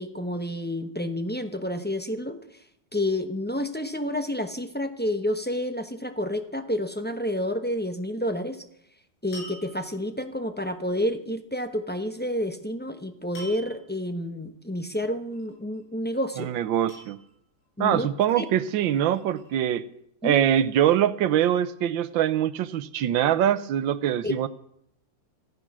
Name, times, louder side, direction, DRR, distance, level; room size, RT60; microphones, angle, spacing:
voice 1, 0.0-2.4 2.9-8.6 9.2-16.5 17.8-18.1 18.4-18.5 20.2-20.4 24.2-24.3, left 1 dB, 15° left, 8 dB, 0.4 m, -29 dB
sound 1, 9.3-10.2 13.4-14.0 15.3-15.8 16.9-17.7 18.6-19.5, equal, 90° left, 8.1 m, -46 dB
voice 2, 16.4-17.2 17.8-19.9 20.2-24.5, right 10 dB, 80° right, 15 dB, 1.5 m, -23 dB
15.0 x 14.5 x 6.1 m, 0.70 s
omnidirectional pair, 2.1 m